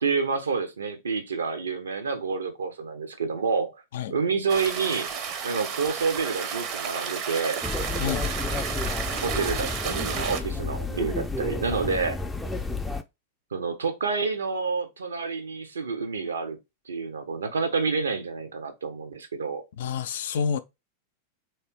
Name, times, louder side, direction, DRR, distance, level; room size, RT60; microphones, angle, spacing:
voice 1, 0.0-3.8 4.1-5.1 5.4-7.6 9.2-12.2 13.5-16.6 16.9-19.6, right 5 dB, 70° right, 0.8 m, -28 dB
sound 1, 4.5-10.4, right 7 dB, 40° right, 0.7 m, -32 dB
sound 2, 7.6-13.0, left 3 dB, 5° left, 0.5 m, -31 dB
voice 2, 8.0-8.3 19.8-20.6, left 7 dB, 60° left, 0.5 m, -28 dB
3.3 x 3.2 x 4.4 m
figure-of-eight pair, 90°, 0 cm